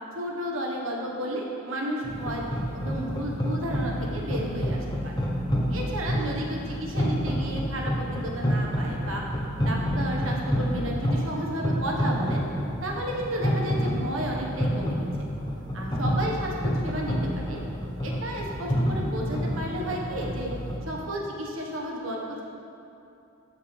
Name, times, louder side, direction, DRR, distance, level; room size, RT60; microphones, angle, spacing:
voice 1, 0.1-2.4 2.7-5.2 5.7-9.2 9.6-12.4 12.8-15.1 15.7-17.6 18.0-20.5 20.9-22.4, equal, 80° right, -1 dB, 1.5 m, -32 dB
sound 1, 2.0-20.8, equal, 20° left, 0.9 m, -29 dB
14.0 x 6.8 x 3.4 m, 2.7 s
head